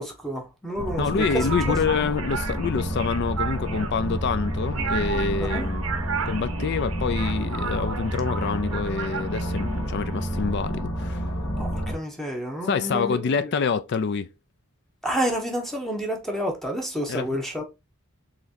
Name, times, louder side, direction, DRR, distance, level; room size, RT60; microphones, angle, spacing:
voice 1, 0.0-2.0 5.4-5.7 11.6-13.5 15.0-17.6, equal, ahead, 0.8 m, -30 dB
sound 1, 0.7-12.0, equal, 80° left, 1.4 m, -29 dB
voice 2, 1.0-5.8 6.3-11.3 12.7-14.3 17.1-17.4, left 5 dB, 50° left, 0.3 m, -26 dB
sound 2, 1.2-10.4, right 6 dB, 70° right, 0.7 m, -34 dB
4.0 x 3.1 x 2.6 m
head